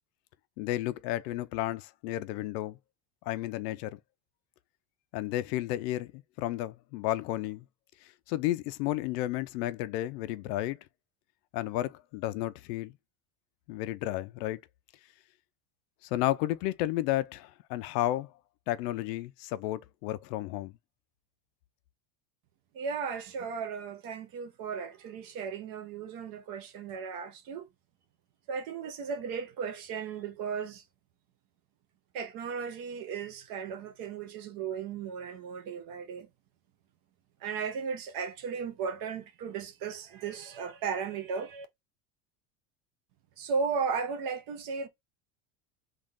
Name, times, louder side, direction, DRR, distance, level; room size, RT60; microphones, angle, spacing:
voice 1, 0.6-2.8 3.3-4.0 5.1-7.6 8.0-10.8 11.5-12.9 13.7-14.6 16.0-18.3 18.7-20.7, left 15 dB, 85° left, 0.7 m, -32 dB
voice 2, 22.7-27.7 28.5-30.8 32.1-36.3 37.4-41.7 43.4-44.9, right 6 dB, 45° right, 1.1 m, -35 dB
3.9 x 2.5 x 3.6 m
cardioid pair, 160°, 47 cm